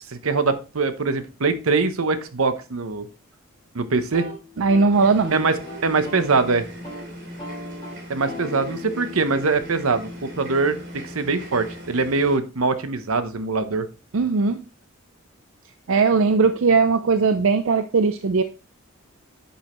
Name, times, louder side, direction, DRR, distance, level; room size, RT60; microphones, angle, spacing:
voice 1, 0.2-3.1 3.7-4.3 5.3-5.5 5.8-6.7 8.1-10.8 11.1-13.9, right 4 dB, 85° right, 11 dB, 0.9 m, -22 dB
sound 1, 4.0-6.4 6.7-7.1 7.4-11.2, left 2 dB, 20° left, 3.1 m, -39 dB
voice 2, 4.6-5.4 14.1-14.6 15.9-18.4, right 4 dB, 70° right, 9 dB, 0.5 m, -19 dB
sound 2, 4.9-12.4, equal, 55° right, 3.2 m, -39 dB
10.0 x 5.5 x 3.1 m, 0.33 s
head